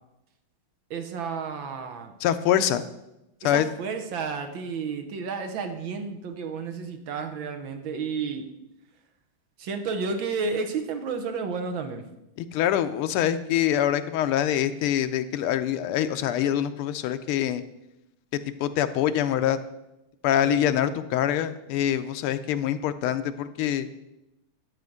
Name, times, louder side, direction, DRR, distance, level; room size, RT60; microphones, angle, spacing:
voice 1, 0.9-2.1 3.4-8.5 9.6-12.0 20.4-20.6, right 5 dB, 65° right, 6 dB, 1.7 m, -31 dB
voice 2, 2.2-2.8 3.4-3.7 12.4-17.6 18.6-19.6 20.2-23.9, left 11 dB, 90° left, 11 dB, 1.6 m, -25 dB
11.0 x 5.1 x 7.8 m, 0.90 s
omnidirectional pair, 2.4 m